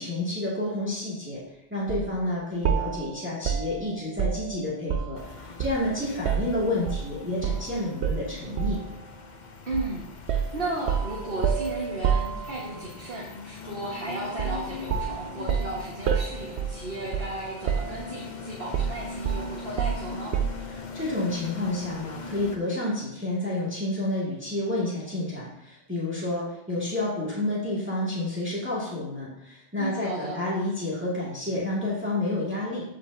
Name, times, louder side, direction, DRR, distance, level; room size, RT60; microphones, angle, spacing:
voice 1, 0.0-1.4 1.7-8.8 20.7-32.8, left 1 dB, 10° right, -8 dB, 2.1 m, -30 dB
sound 1, 1.9-2.1 2.6-5.2 5.6-7.1 7.4-7.7 8.0-8.9 9.7-9.9 10.3-12.8 14.4-14.6 14.9-17.4 17.7-18.3 18.7-20.7, right 7 dB, 85° right, 0.9 m, -29 dB
sound 2, 5.2-22.6, left 4 dB, 50° left, 0.8 m, -41 dB
voice 2, 9.7-20.3 29.8-30.4, right 2 dB, 60° right, -5 dB, 1.7 m, -34 dB
14.5 x 5.1 x 2.7 m, 0.85 s
omnidirectional pair, 1.1 m